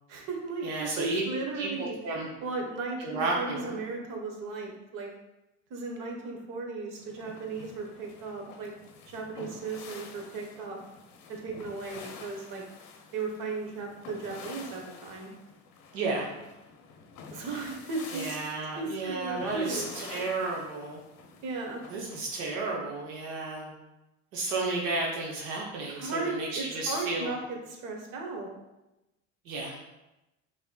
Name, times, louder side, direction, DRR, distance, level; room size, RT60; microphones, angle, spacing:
voice 1, 0.1-2.0 2.4-5.1 5.7-8.7 9.1-10.8 11.3-12.6 13.1-15.3 17.3-18.4 18.7-20.2 21.4-21.8 25.9-28.5, right 3 dB, 55° right, 1 dB, 1.1 m, -36 dB
voice 2, 0.6-1.2 1.5-2.3 3.0-3.7 15.9-16.3 18.1-21.0 21.9-23.7 24.3-27.4 29.4-29.8, right 3 dB, 85° right, -2 dB, 0.9 m, -32 dB
sound 1, 7.0-22.5, left 5 dB, 50° left, 0.7 m, -48 dB
5.5 x 3.0 x 2.2 m, 0.96 s
hypercardioid pair, 85°, 38 cm